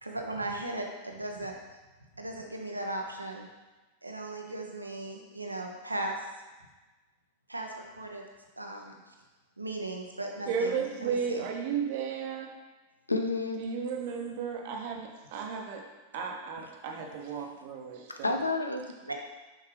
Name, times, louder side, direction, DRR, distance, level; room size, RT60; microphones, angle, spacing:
voice 1, 0.0-1.6 2.2-3.5 4.0-6.3 7.5-8.2 8.6-9.0 9.6-11.4 19.0-19.1, right 2 dB, 85° right, 2 dB, 0.8 m, -37 dB
voice 2, 10.5-12.5 13.6-15.8 16.1-18.4, right 6 dB, 50° right, 2 dB, 1.0 m, -34 dB
voice 3, 13.1-13.7 18.1-19.1, left 3 dB, 80° left, 5 dB, 0.6 m, -30 dB
6.2 x 5.7 x 3.3 m, 1.2 s
figure-of-eight pair, 90°, 0 cm